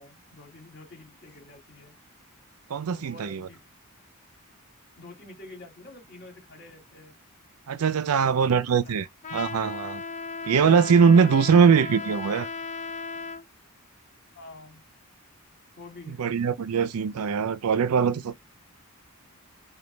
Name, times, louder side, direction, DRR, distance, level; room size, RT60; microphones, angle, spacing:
voice 1, 0.0-2.0 2.9-3.6 5.0-7.2 7.9-9.0 11.2-12.1 14.3-14.9 15.8-16.2, left 2 dB, 50° left, 2.1 m, -48 dB
voice 2, 2.7-3.5 7.7-9.1 9.3-10.0 10.5-12.5 16.2-18.4, right 6 dB, 75° right, 0.5 m, -21 dB
Trumpet, 9.2-13.4, left 4 dB, 35° left, 0.5 m, -36 dB
5.1 x 2.3 x 3.2 m
head